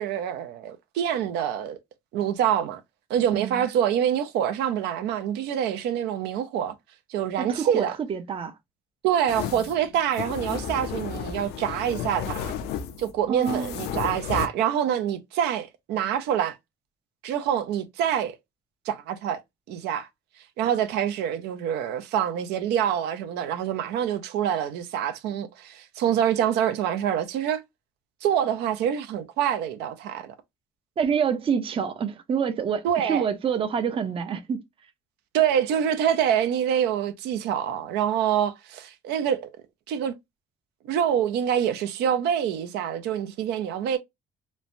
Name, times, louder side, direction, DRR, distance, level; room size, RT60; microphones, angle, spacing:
voice 1, 0.0-1.8 2.1-2.8 3.1-6.8 7.1-7.9 9.0-12.5 13.0-16.6 17.2-18.4 18.9-19.4 19.7-20.1 20.6-27.6 28.2-30.3 32.8-33.3 35.3-39.5 39.9-40.1 40.9-44.0, right 9 dB, 80° right, 0.5 m, -26 dB
voice 2, 3.3-3.7 7.4-8.5 13.3-13.7 31.0-34.6, right 7 dB, 30° right, 0.5 m, -27 dB
sound 1, 9.3-14.5, left 8 dB, 80° left, 0.5 m, -33 dB
3.1 x 2.1 x 2.5 m
cardioid pair, 110°, 17 cm